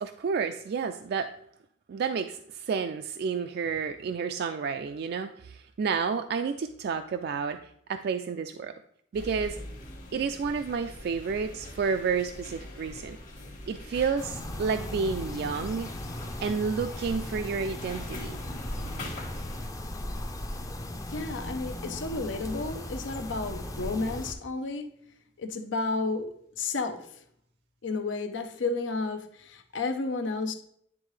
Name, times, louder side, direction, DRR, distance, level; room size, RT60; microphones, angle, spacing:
voice 1, 0.0-1.3 1.9-7.6 7.9-8.7 9.1-9.6 10.1-13.2 13.7-15.9 16.4-18.4, right 5 dB, 60° right, 7 dB, 0.3 m, -30 dB
sound 1, 9.1-19.7, left 1 dB, 45° left, 1.4 m, -43 dB
sound 2, 14.2-24.3, left 1 dB, 20° left, 0.5 m, -37 dB
voice 2, 21.1-24.9 25.4-26.3 26.6-27.1 27.8-30.5, left 3 dB, 80° left, 6 dB, 0.7 m, -32 dB
9.7 x 3.7 x 3.2 m, 0.69 s
head